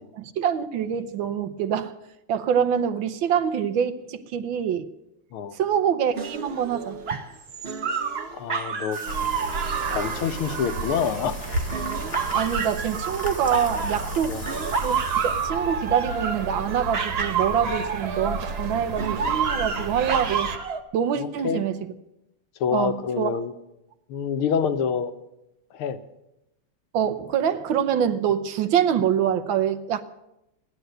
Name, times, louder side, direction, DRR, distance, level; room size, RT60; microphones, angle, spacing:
voice 1, 0.1-1.9 2.3-4.9 5.5-7.2 12.3-14.4 14.8-20.5 20.9-21.8 22.7-23.3 26.9-30.0, right 8 dB, 70° right, 9 dB, 1.5 m, -25 dB
sound 1, 6.2-11.1 11.7-14.2 14.5-18.6 19.0-20.8, right 6 dB, 45° right, 0.8 m, -29 dB
voice 2, 8.3-9.0 9.9-11.4 14.3-14.4 21.2-21.7 22.6-23.5 24.1-25.1 25.7-26.0, left 7 dB, 85° left, 10 dB, 1.8 m, -26 dB
sound 2, 8.9-15.5, left 3 dB, 30° left, 1.7 m, -41 dB
sound 3, 9.0-20.6, right 3 dB, 90° right, 2.2 m, -33 dB
15.5 x 11.5 x 7.9 m, 0.88 s
omnidirectional pair, 2.3 m